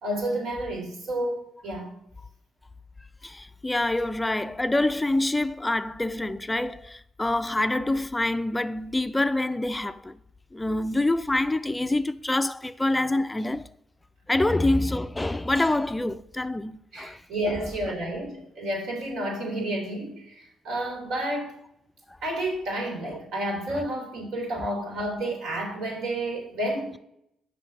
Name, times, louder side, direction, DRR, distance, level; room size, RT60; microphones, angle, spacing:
voice 1, 0.0-1.9 16.9-21.5 22.2-27.0, right 1 dB, 85° right, 2.9 m, -30 dB
voice 2, 3.2-10.2 10.5-13.7 14.3-17.2 22.1-22.2 24.6-24.7, left 2 dB, 15° left, 0.3 m, -26 dB
6.3 x 5.3 x 5.4 m
cardioid pair, 90°, 0 cm